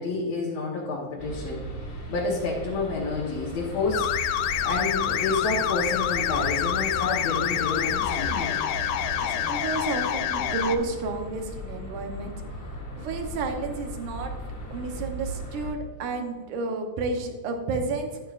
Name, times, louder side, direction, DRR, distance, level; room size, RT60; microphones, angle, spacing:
voice 1, 0.0-1.7 2.1-4.1 4.6-8.6, left 3 dB, 65° left, -4 dB, 2.2 m, -29 dB
sound 1, 1.2-15.7, right 1 dB, 40° left, 1.7 m, -37 dB
sound 2, 3.9-10.8, left 11 dB, 85° left, 2.1 m, -27 dB
sound 3, 4.4-11.1, right 3 dB, 60° right, 1.4 m, -44 dB
voice 2, 9.2-12.3 13.0-14.3 14.7-18.2, right 3 dB, 80° right, 4 dB, 2.5 m, -31 dB
11.0 x 9.0 x 2.5 m, 1.5 s
omnidirectional pair, 3.5 m